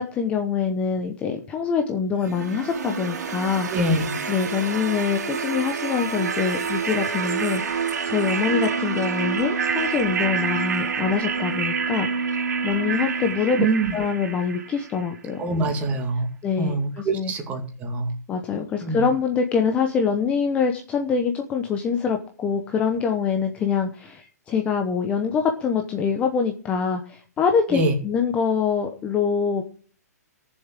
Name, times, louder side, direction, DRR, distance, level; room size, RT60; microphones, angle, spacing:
voice 1, 0.0-3.7 4.3-12.4 12.6-13.7 13.9-15.4 16.4-17.3 18.3-29.6, left 6 dB, 15° left, 5 dB, 0.9 m, -24 dB
sound 1, 2.2-15.2, right 6 dB, 75° right, 3.1 m, -27 dB
voice 2, 3.7-4.1 13.6-14.0 15.4-16.3 16.6-18.1 18.8-19.1 27.7-28.0, right 2 dB, 15° right, 4 dB, 2.2 m, -24 dB
14.5 x 7.2 x 7.4 m, 0.43 s
hypercardioid pair, 165°, 9 cm